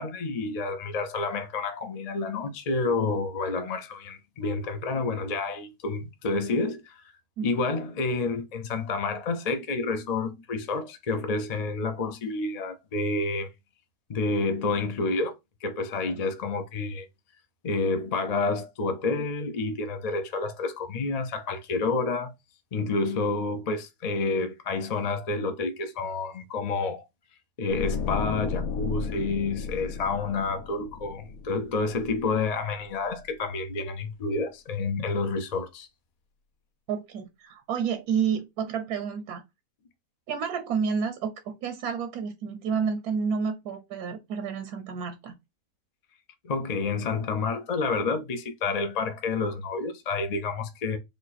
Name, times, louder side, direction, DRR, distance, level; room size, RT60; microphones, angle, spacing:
voice 1, 0.0-7.0 7.4-13.5 14.1-17.0 17.6-22.3 22.7-27.0 27.6-35.9 46.4-51.0, left 3 dB, 55° left, 0.4 m, -29 dB
sound 1, 27.7-32.8 33.1-33.3, left 5 dB, 75° left, 1.1 m, -34 dB
voice 2, 36.9-39.4 40.3-45.3, right 6 dB, 85° right, 1.2 m, -30 dB
4.9 x 2.2 x 4.1 m
omnidirectional pair, 1.6 m